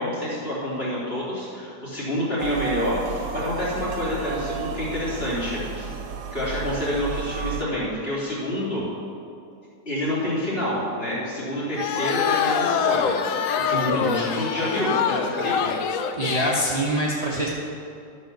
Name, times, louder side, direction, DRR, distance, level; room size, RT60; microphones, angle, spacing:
voice 1, 0.0-5.9 6.3-8.9 9.8-15.7, left 1 dB, 35° left, -8 dB, 3.3 m, -28 dB
sound 1, 2.4-7.6, right 6 dB, 75° right, 1.3 m, -33 dB
sound 2, 11.8-16.6, left 7 dB, 65° left, 0.9 m, -25 dB
voice 2, 13.7-14.3 16.1-17.5, right 1 dB, 25° right, -5 dB, 1.1 m, -25 dB
12.5 x 5.6 x 6.6 m, 2.5 s
omnidirectional pair, 1.7 m